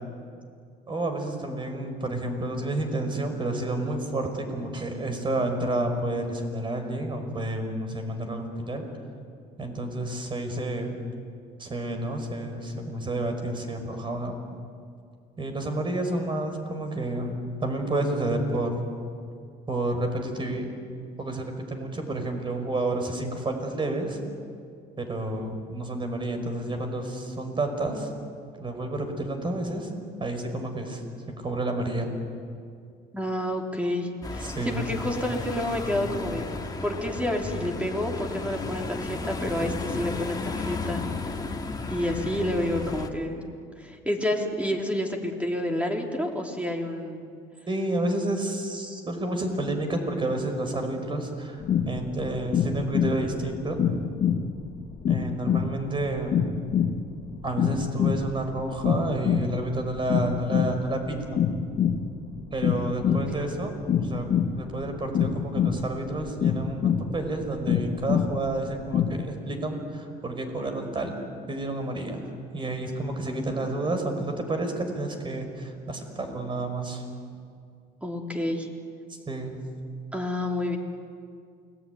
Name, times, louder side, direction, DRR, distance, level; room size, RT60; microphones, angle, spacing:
voice 1, 0.9-8.9 9.6-11.0 11.6-14.4 15.4-18.8 19.7-20.7 21.2-24.2 25.0-28.1 28.6-29.9 30.2-31.0 31.3-32.1 34.4-34.9 47.7-53.8 55.1-56.4 57.4-61.4 62.5-71.1 71.5-72.3 72.5-77.0 79.3-79.6, right 2 dB, 30° right, 5 dB, 5.5 m, -30 dB
voice 2, 33.1-36.5 36.8-41.0 41.9-43.4 43.8-47.3 63.1-63.4 78.0-78.7 80.1-80.8, left 1 dB, 10° right, 1 dB, 3.8 m, -29 dB
sound 1, 34.2-43.1, left 3 dB, 25° left, 2.5 m, -34 dB
sound 2, 51.6-69.2, left 7 dB, 55° left, 1.8 m, -26 dB
29.0 x 20.5 x 9.5 m, 2.3 s
cardioid pair, 110°, 17 cm